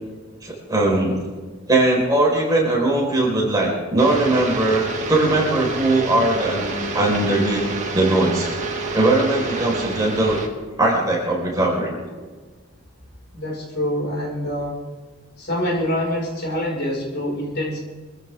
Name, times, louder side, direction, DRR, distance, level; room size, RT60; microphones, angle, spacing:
voice 1, 0.4-1.2 1.7-7.6 7.9-8.5 8.9-10.4 10.8-12.0, right 2 dB, 15° right, -3 dB, 4.6 m, -20 dB
sound 1, 4.0-10.5, right 3 dB, 35° right, 2.0 m, -28 dB
voice 2, 13.3-14.8 15.4-17.8, equal, 50° left, -3 dB, 5.5 m, -25 dB
24.5 x 15.0 x 3.6 m, 1.4 s
head